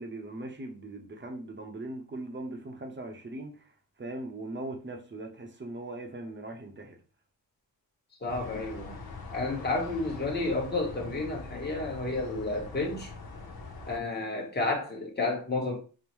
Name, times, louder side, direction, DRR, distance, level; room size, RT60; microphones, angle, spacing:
voice 1, 0.0-3.7 4.0-7.0, right 2 dB, 30° right, 0.7 m, -40 dB
voice 2, 8.2-9.0 9.3-13.1 13.9-15.8, left 2 dB, 25° left, 1.1 m, -31 dB
sound 1, 8.3-14.0, left 3 dB, 75° left, 0.8 m, -43 dB
5.3 x 2.1 x 3.0 m
wide cardioid pair, 160°, 37 cm